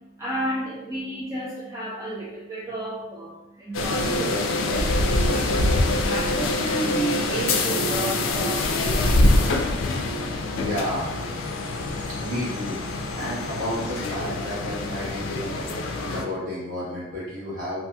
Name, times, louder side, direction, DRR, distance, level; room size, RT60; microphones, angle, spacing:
voice 1, 0.2-5.0 5.3-9.9, right 1 dB, 15° right, -7 dB, 0.4 m, -32 dB
sound 1, 3.7-16.2, left 2 dB, 85° left, 0.4 m, -25 dB
sound 2, 9.1-14.2, left 3 dB, 55° left, 0.8 m, -44 dB
voice 2, 10.5-11.1 12.1-12.8 13.1-15.7 15.9-17.9, left 1 dB, 45° right, -9 dB, 1.3 m, -31 dB
2.7 x 2.5 x 2.2 m, 0.96 s
head